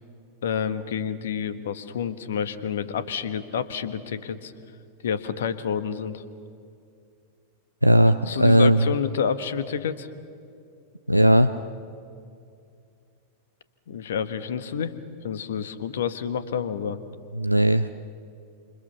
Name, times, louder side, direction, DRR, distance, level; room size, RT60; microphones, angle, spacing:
voice 1, 0.4-4.5 5.0-6.2 8.3-10.1 13.9-14.9 15.2-17.0, left 7 dB, 60° left, 12 dB, 1.5 m, -29 dB
voice 2, 7.8-8.9 11.1-11.5 17.4-17.9, right 1 dB, 90° right, 10 dB, 0.6 m, -17 dB
28.5 x 27.5 x 7.0 m, 2.4 s
figure-of-eight pair, 90°, 0 cm